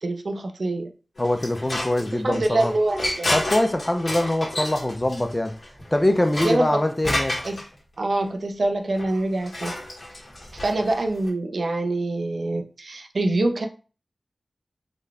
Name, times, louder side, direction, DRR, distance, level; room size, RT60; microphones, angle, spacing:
voice 1, 0.0-0.9 2.1-3.3 6.4-6.8 7.4-7.6 8.0-9.7 10.5-13.7, right 2 dB, 70° right, 0.5 m, -25 dB
sound 1, 1.2-7.6 9.0-11.3, left 1 dB, 55° left, 1.4 m, -31 dB
voice 2, 1.2-2.7 3.3-5.5 5.9-7.4, left 1 dB, 25° left, 0.5 m, -23 dB
3.9 x 2.1 x 3.3 m
wide cardioid pair, 60°, 0 cm